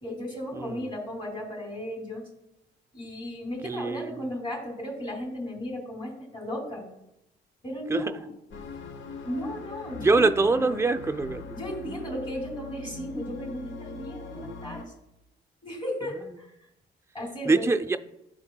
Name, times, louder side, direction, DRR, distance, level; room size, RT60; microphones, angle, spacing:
voice 1, 0.0-2.3 2.9-6.9 7.6-8.3 9.2-10.2 10.6-10.8 11.5-14.9 15.6-16.5 17.1-17.7, equal, 25° left, 0 dB, 2.6 m, -35 dB
voice 2, 3.6-4.1 7.9-8.0 10.0-11.4 14.4-14.6 17.5-18.0, right 3 dB, 15° right, 8 dB, 0.4 m, -24 dB
sound 1, 8.5-14.8, left 4 dB, 75° left, 0.9 m, -41 dB
12.5 x 4.3 x 2.2 m, 0.84 s
cardioid pair, 90°, 20 cm